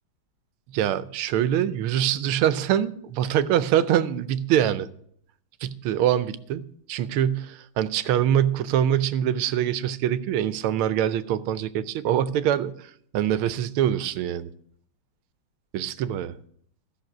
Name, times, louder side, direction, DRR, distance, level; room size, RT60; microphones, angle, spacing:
voice 1, 0.7-4.9 5.6-14.5 15.7-16.3, right 10 dB, 85° right, 1.5 m, -24 dB
13.0 x 6.4 x 6.0 m
omnidirectional pair, 2.3 m